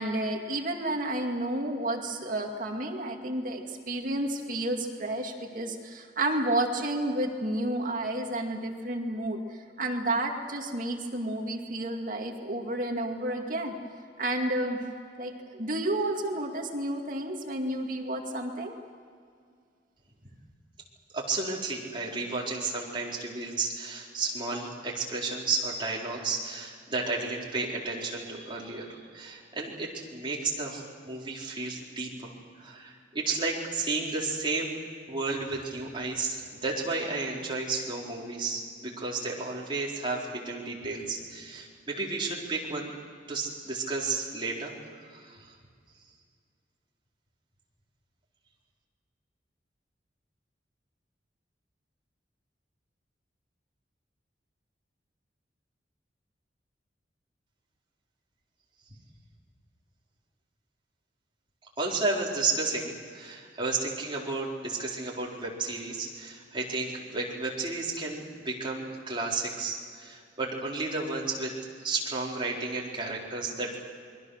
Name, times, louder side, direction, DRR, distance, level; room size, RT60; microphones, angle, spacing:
voice 1, 0.0-13.7 14.2-14.8 15.2-18.7, right 1 dB, 50° right, 2 dB, 2.3 m, -31 dB
voice 2, 21.1-34.8 35.1-42.9 43.3-44.7 45.1-45.5 61.8-71.5 71.8-73.8, right 3 dB, 30° right, -3 dB, 4.2 m, -32 dB
28.5 x 22.0 x 6.5 m, 2.2 s
head